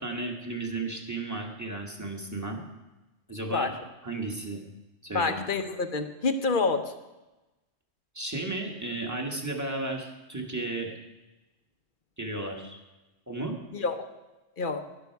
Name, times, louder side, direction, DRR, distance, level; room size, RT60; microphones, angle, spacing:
voice 1, 0.0-2.6 3.3-3.7 4.0-4.6 5.0-5.3 8.1-10.9 12.2-12.8 13.3-13.6, right 2 dB, 15° right, 2 dB, 1.5 m, -34 dB
voice 2, 5.1-6.9 13.7-14.0 14.6-14.8, left 4 dB, 45° left, 8 dB, 0.9 m, -27 dB
12.5 x 11.0 x 4.6 m, 1.1 s
omnidirectional pair, 1.3 m